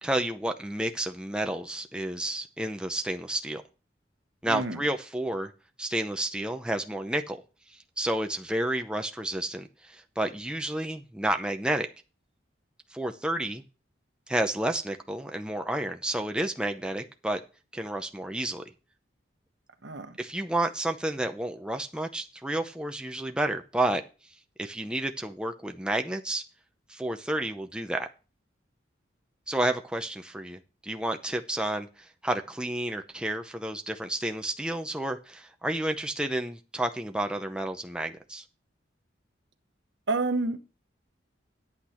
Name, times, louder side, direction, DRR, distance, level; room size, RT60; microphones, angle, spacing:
voice 1, 0.0-3.6 4.4-5.5 5.8-7.4 7.7-11.9 12.9-13.6 14.3-17.4 17.7-18.6 20.2-24.0 24.6-26.4 26.9-28.1 29.5-38.4, right 1 dB, 5° right, 0.6 m, -30 dB
voice 2, 4.5-4.8 19.8-20.1 40.1-40.6, right 3 dB, 70° right, 1.1 m, -28 dB
10.0 x 8.4 x 4.4 m
head